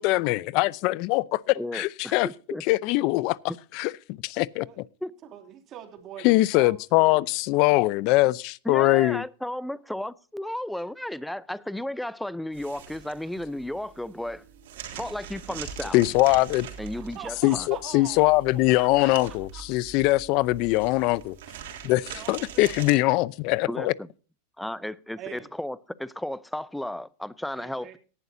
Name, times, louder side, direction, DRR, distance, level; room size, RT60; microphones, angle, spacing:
voice 1, 0.0-2.3 2.7-3.4 3.7-3.9 4.2-4.8 6.2-9.2 15.9-16.7 17.4-21.4 21.8-23.9, left 19 dB, 45° left, 0.6 m, -22 dB
voice 2, 1.6-2.6 5.0-5.1 8.6-14.4 14.9-16.0 16.8-17.7 23.6-24.1 24.6-28.0, left 1 dB, ahead, 0.6 m, -34 dB
voice 3, 5.2-7.3 7.7-7.9 16.9-19.6 21.8-22.8 25.2-25.5 27.6-27.9, right 10 dB, 35° right, 3.0 m, -44 dB
sound 1, 12.5-22.9, right 7 dB, 75° right, 3.6 m, -43 dB
18.0 x 11.5 x 2.7 m
supercardioid pair, 145°, 0 cm